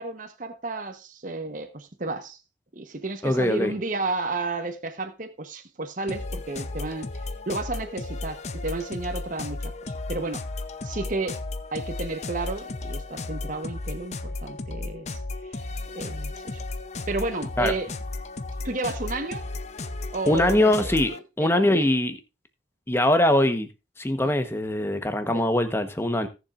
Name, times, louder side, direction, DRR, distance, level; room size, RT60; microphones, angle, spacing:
voice 1, 0.0-2.4 2.7-7.1 7.5-9.6 10.1-10.4 10.8-11.4 11.7-15.2 15.5-15.6 15.9-16.6 17.1-17.9 18.6-19.5 20.1-21.9 24.2-24.3 25.3-25.4, right 3 dB, 50° right, 1.0 m, -32 dB
voice 2, 3.2-3.7 17.6-17.7 20.3-21.1 21.4-22.2 22.9-23.7 24.0-26.3, left 1 dB, 15° left, 1.0 m, -22 dB
sound 1, 6.1-21.2, left 2 dB, 40° left, 0.7 m, -34 dB
17.5 x 7.1 x 2.5 m
head